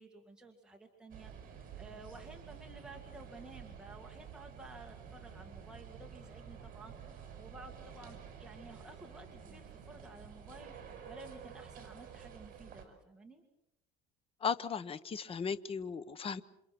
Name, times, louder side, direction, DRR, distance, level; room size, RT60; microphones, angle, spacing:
voice 1, 0.0-13.4, right 2 dB, 5° right, 1 dB, 2.2 m, -53 dB
sound 1, 1.1-12.9, right 7 dB, 45° right, 6.0 m, -50 dB
voice 2, 14.4-16.4, left 6 dB, 30° left, 15 dB, 1.1 m, -36 dB
28.5 x 26.5 x 6.0 m, 0.84 s
cardioid pair, 150°, 20 cm